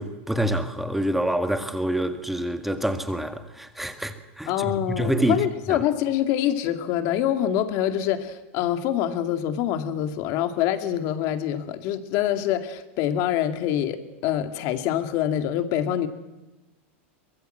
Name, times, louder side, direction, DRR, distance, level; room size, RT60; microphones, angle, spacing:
voice 1, 0.0-5.4 5.7-5.8, right 1 dB, 5° right, 1.7 m, -27 dB
voice 2, 4.5-16.1, left 11 dB, 50° left, 2.2 m, -25 dB
23.5 x 20.0 x 7.8 m
supercardioid pair, 130°, 7 cm